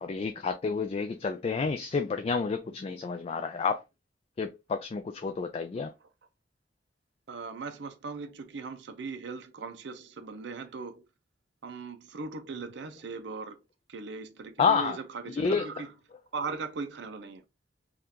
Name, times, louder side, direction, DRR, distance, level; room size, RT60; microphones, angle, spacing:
voice 1, 0.0-3.8 4.4-5.9 14.6-15.0 15.4-15.7, left 5 dB, 35° left, 0.3 m, -29 dB
voice 2, 7.3-11.0 11.6-13.6 13.9-15.9 16.3-17.4, right 4 dB, 70° right, 0.5 m, -39 dB
3.5 x 2.4 x 2.8 m
head